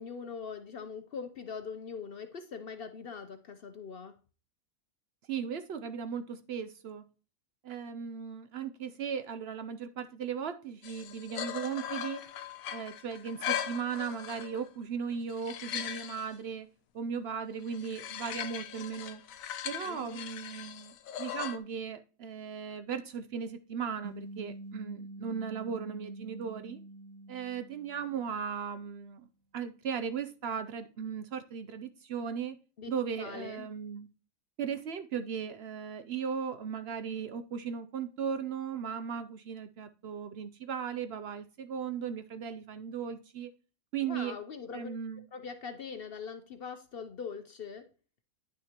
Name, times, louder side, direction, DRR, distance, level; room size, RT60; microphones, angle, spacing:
voice 1, 0.0-4.2 19.9-20.2 32.8-32.9 33.2-33.7 44.0-44.9 45.3-47.9, left 6 dB, 55° left, 8 dB, 0.7 m, -42 dB
voice 2, 5.3-7.0 7.6-12.2 12.7-16.7 16.9-19.2 19.6-26.8 27.3-29.3 29.5-32.6 32.9-34.1 34.6-43.5 43.9-44.4 44.7-45.2, right 7 dB, 65° right, 10 dB, 0.7 m, -37 dB
sound 1, 10.8-14.7 15.1-16.3 17.7-21.6, left 10 dB, 75° left, 1.0 m, -39 dB
sound 2, 24.0-28.7, right 2 dB, 85° right, 1.4 m, -46 dB
10.0 x 6.2 x 2.9 m, 0.37 s
omnidirectional pair, 1.5 m